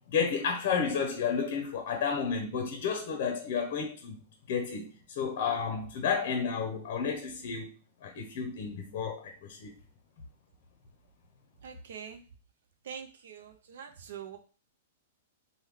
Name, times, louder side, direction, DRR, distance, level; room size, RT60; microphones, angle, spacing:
voice 1, 0.1-4.2 4.5-4.9 5.2-7.7 8.0-9.7, left 6 dB, 50° left, 0.6 m, -31 dB
voice 2, 11.6-12.2 12.8-14.4, right 7 dB, 75° right, 0.4 m, -44 dB
3.1 x 2.2 x 3.4 m
supercardioid pair, 165°, 0 cm